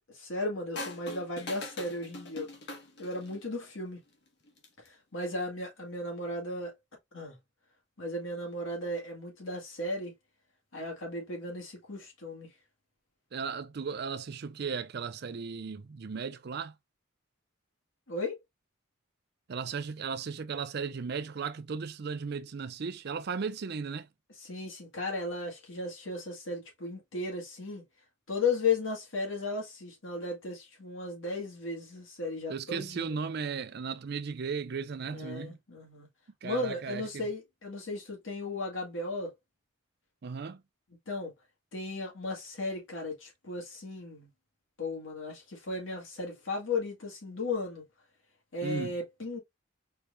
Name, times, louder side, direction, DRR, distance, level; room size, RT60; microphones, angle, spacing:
voice 1, 0.1-2.5 3.0-4.0 4.8-6.7 7.1-7.4 8.0-10.1 10.7-12.5 18.1-18.4 24.4-27.8 28.3-33.2 35.1-36.1 36.4-39.3 41.1-41.3 41.7-44.3 44.8-47.8 48.5-49.4, left 3 dB, 75° left, 1.9 m, -35 dB
sound 1, 0.8-3.5 4.5-4.9, left 2 dB, 55° left, 1.2 m, -42 dB
voice 2, 13.3-16.7 19.5-24.1 32.5-35.6 36.4-37.3 40.2-40.6 48.6-48.9, right 5 dB, 55° right, 0.4 m, -36 dB
4.4 x 3.5 x 2.6 m
head